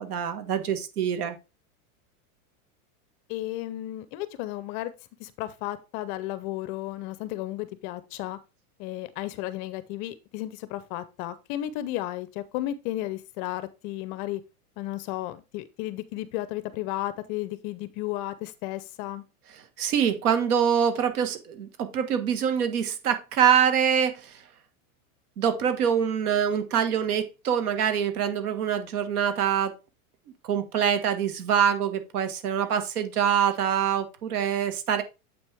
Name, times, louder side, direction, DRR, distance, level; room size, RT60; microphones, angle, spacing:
voice 1, 0.0-1.3 19.8-24.3 25.4-29.7 30.4-35.0, right 8 dB, 75° right, 9 dB, 1.7 m, -25 dB
voice 2, 3.3-4.9 5.2-8.4 8.8-14.4 14.8-19.2, left 14 dB, 35° left, 15 dB, 0.6 m, -33 dB
7.6 x 6.0 x 3.4 m, 0.27 s
supercardioid pair, 150°, 45 cm